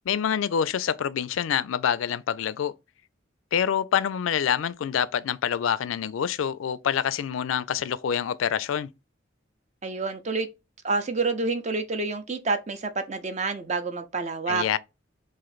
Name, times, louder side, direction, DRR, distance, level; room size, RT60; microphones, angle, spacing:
voice 1, 0.1-2.7 3.5-8.9 14.5-14.8, left 8 dB, 85° left, 0.4 m, -26 dB
voice 2, 9.8-10.5 10.8-14.6, right 3 dB, 35° right, 0.6 m, -28 dB
3.1 x 2.5 x 4.0 m
head